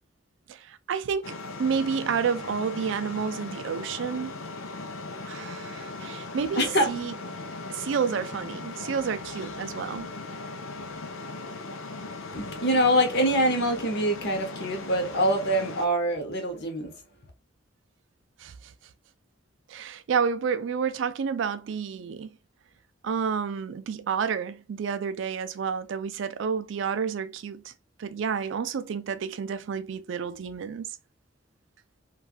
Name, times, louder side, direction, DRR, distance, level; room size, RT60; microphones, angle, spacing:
voice 1, 0.5-4.3 5.2-7.1 7.7-10.1 18.4-18.7 19.7-22.3 23.0-27.7 28.0-30.9, right 6 dB, 65° right, 0.3 m, -30 dB
sound 1, 1.2-15.9, left 3 dB, 80° left, 0.5 m, -38 dB
voice 2, 6.6-6.9 12.3-17.0, equal, 55° left, 1.0 m, -24 dB
3.2 x 2.3 x 2.4 m
head